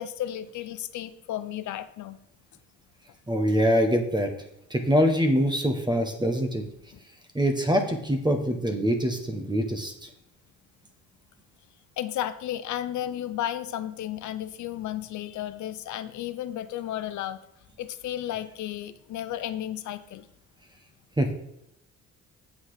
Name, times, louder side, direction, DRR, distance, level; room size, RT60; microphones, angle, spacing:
voice 1, 0.0-2.2 12.0-17.4 17.8-20.2, left 12 dB, 70° left, 12 dB, 0.7 m, -33 dB
voice 2, 3.3-4.3 4.7-6.6 7.3-9.9 21.2-21.3, equal, 15° right, 5 dB, 1.4 m, -24 dB
8.2 x 6.2 x 5.0 m, 0.80 s
cardioid pair, 90°, 30 cm